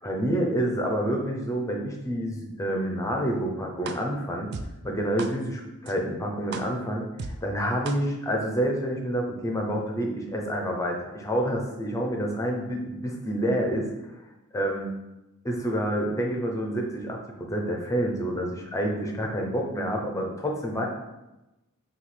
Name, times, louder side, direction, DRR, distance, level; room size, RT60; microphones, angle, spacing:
voice 1, 0.0-4.5 4.8-13.9 14.5-14.9 15.4-20.9, equal, 15° left, 1 dB, 0.6 m, -28 dB
sound 1, 3.9-4.0 4.5-4.6 5.2-5.3 5.9-6.0 6.5-6.6 7.2-7.3 7.9-8.0, right 5 dB, 50° right, 0.3 m, -34 dB
6.1 x 2.4 x 3.3 m, 0.98 s
head